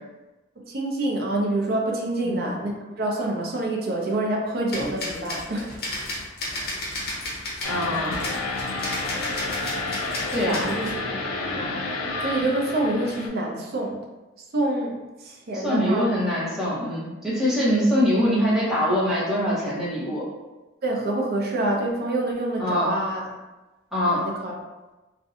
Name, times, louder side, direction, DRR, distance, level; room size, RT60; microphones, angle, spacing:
voice 1, 0.6-5.9 9.6-9.8 10.6-11.1 11.5-11.7 12.2-14.0 14.5-16.2 20.8-23.3 24.1-24.5, right 1 dB, 50° right, -1 dB, 0.5 m, -27 dB
sound 1, 4.7-10.9, left 1 dB, 50° left, 0.7 m, -33 dB
sound 2, 7.6-13.3, left 3 dB, 85° left, 0.4 m, -30 dB
voice 2, 7.7-8.2 10.3-10.7 15.5-20.2 22.6-22.9 23.9-24.2, equal, 5° right, -9 dB, 0.7 m, -23 dB
2.5 x 2.1 x 2.6 m, 1.1 s
head